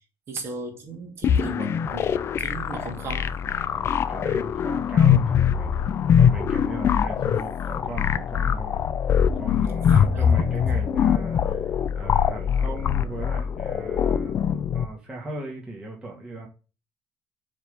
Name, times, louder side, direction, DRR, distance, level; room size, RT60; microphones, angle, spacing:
voice 1, 0.3-3.3 7.1-7.2 9.9-10.2 16.1-16.3, right 3 dB, 40° right, 2.8 m, -36 dB
sound 1, 1.2-14.8, left 8 dB, 40° left, 0.5 m, -23 dB
voice 2, 3.7-14.3 14.7-16.5, right 2 dB, 15° right, 1.8 m, -38 dB
7.1 x 3.8 x 6.5 m
cardioid pair, 140°, 7 cm